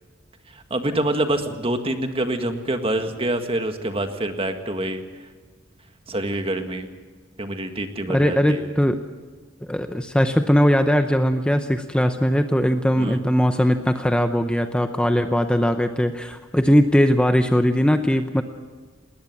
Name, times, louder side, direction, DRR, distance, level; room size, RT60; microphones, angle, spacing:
voice 1, 0.5-5.0 6.1-6.9 7.4-8.7 13.0-13.2, right 1 dB, 30° right, 6 dB, 1.8 m, -26 dB
voice 2, 8.1-9.0 9.6-18.4, equal, 5° left, 7 dB, 0.8 m, -20 dB
20.5 x 19.0 x 7.3 m, 1.5 s
head